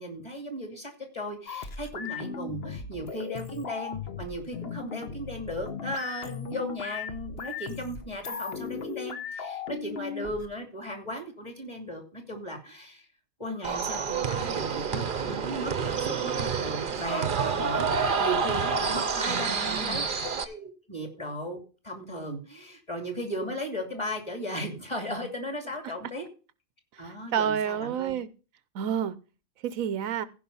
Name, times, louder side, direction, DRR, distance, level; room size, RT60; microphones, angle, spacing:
voice 1, 0.0-13.1 13.4-26.2 27.0-28.1, equal, 20° left, 2.7 m, -36 dB
sound 1, 1.5-10.5, left 6 dB, 50° left, 1.2 m, -37 dB
sound 2, 13.6-20.4, right 5 dB, 45° right, 0.9 m, -28 dB
voice 2, 19.3-20.1 25.8-25.9 27.0-28.3 28.7-29.1 29.6-30.3, right 8 dB, 80° right, 1.1 m, -30 dB
15.5 x 5.4 x 5.5 m
omnidirectional pair, 1.4 m